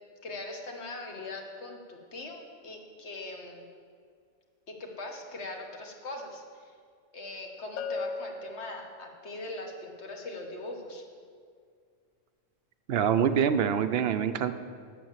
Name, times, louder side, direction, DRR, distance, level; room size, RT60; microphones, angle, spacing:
voice 1, 0.2-3.7 4.7-6.8 7.1-11.0, left 2 dB, 60° left, 2 dB, 1.6 m, -41 dB
Bell, 7.8-9.4, left 4 dB, 80° left, 0.4 m, -38 dB
voice 2, 12.9-14.5, right 8 dB, 65° right, 10 dB, 0.7 m, -25 dB
9.3 x 7.3 x 7.2 m, 2.1 s
omnidirectional pair, 1.3 m